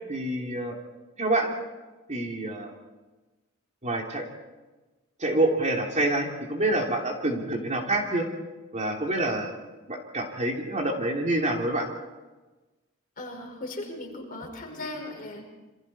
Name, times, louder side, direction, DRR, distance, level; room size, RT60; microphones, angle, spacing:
voice 1, 0.1-0.8 1.2-1.5 2.1-2.7 3.8-4.2 5.2-8.3 8.7-9.5 9.9-11.9, right 1 dB, 35° right, 1 dB, 3.1 m, -27 dB
voice 2, 13.2-15.5, left 2 dB, 40° left, 1 dB, 5.3 m, -37 dB
28.0 x 25.5 x 4.4 m, 1.2 s
head